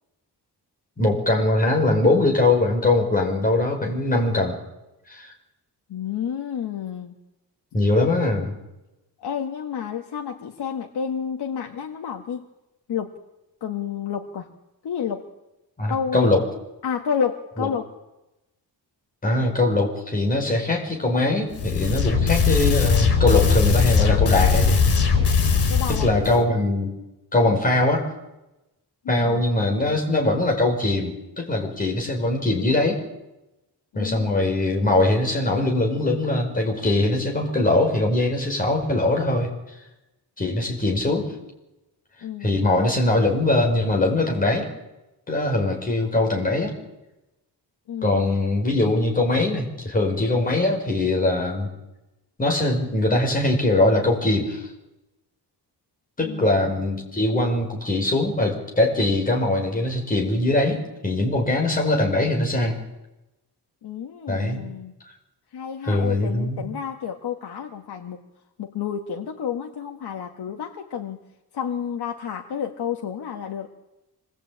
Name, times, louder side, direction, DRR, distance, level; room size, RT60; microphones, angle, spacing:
voice 1, 1.0-4.6 5.1-5.3 7.7-8.5 15.8-16.4 17.6-17.7 19.2-24.8 25.9-26.9 27.3-28.1 29.1-33.0 34.0-39.5 40.4-41.3 42.4-44.7 45.3-46.8 48.0-51.7 52.4-54.7 56.2-62.8 64.3-64.6 65.8-66.7, left 2 dB, 20° left, 0 dB, 5.6 m, -22 dB
voice 2, 5.9-7.2 7.7-7.8 9.2-12.4 12.9-13.2 13.6-14.5 14.8-15.3 15.9-16.3 16.8-17.9 25.5-26.4 29.0-29.5 33.9-34.4 42.2-42.6 47.9-48.3 56.2-56.6 63.8-64.9 65.5-68.2 68.6-71.2 71.5-73.7, left 7 dB, 70° left, 3 dB, 1.9 m, -30 dB
sound 1, 21.5-26.4, left 6 dB, 85° left, 5.0 m, -20 dB
26.0 x 20.5 x 8.9 m, 0.96 s
wide cardioid pair, 160°, 41 cm